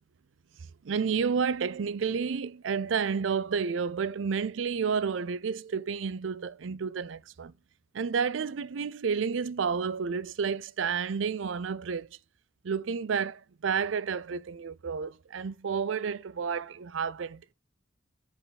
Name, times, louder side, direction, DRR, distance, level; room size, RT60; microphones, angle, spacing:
voice 1, 0.8-7.5 7.9-12.1 12.6-17.5, right 6 dB, 85° right, 0.5 m, -30 dB
7.5 x 4.9 x 4.1 m
head